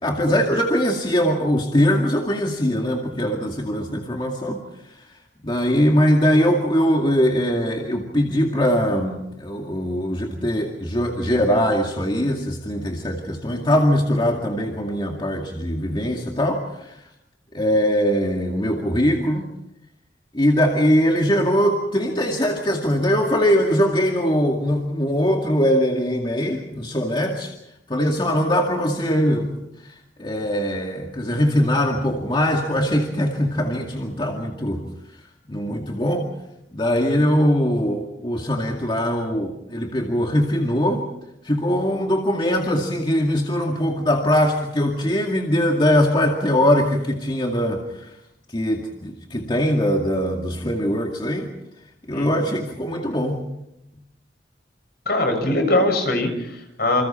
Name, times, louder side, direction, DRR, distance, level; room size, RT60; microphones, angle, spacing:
voice 1, 0.0-5.0 5.4-17.0 17.5-19.5 20.3-27.5 27.9-29.5 29.8-34.8 35.2-36.3 36.7-41.0 41.4-48.1 48.5-51.5 52.1-53.4, equal, 30° left, 1 dB, 2.3 m, -21 dB
voice 2, 55.0-57.0, left 1 dB, 60° left, 4 dB, 6.6 m, -21 dB
28.5 x 27.0 x 4.5 m, 0.83 s
head